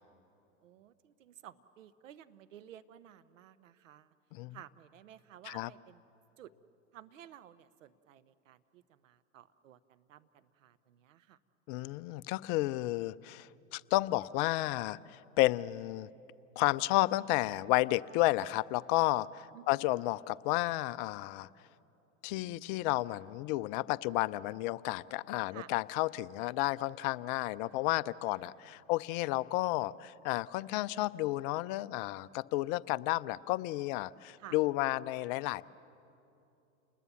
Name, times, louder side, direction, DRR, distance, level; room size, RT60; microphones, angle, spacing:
voice 1, 0.6-4.1 4.5-6.0 6.4-6.5 6.9-11.4 19.5-19.9 25.5-25.7 28.4-28.6 34.4-34.6, right 11 dB, 70° right, 13 dB, 1.0 m, -54 dB
voice 2, 11.7-16.1 16.6-21.5 22.2-35.6, left 18 dB, 40° left, 18 dB, 0.5 m, -32 dB
29.0 x 20.5 x 7.1 m, 2.8 s
hypercardioid pair, 90°, 40 cm